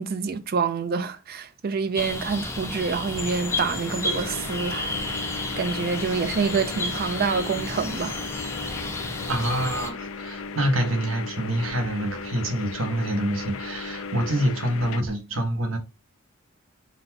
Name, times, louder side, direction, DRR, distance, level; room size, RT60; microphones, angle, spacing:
voice 1, 0.0-8.2, right 5 dB, 50° right, 0.4 m, -27 dB
sound 1, 1.9-9.9, left 2 dB, 15° left, 0.6 m, -32 dB
sound 2, 3.1-15.0, left 4 dB, 80° left, 0.4 m, -36 dB
voice 2, 9.3-15.8, right 1 dB, 80° right, 1.0 m, -26 dB
4.0 x 2.2 x 4.1 m
head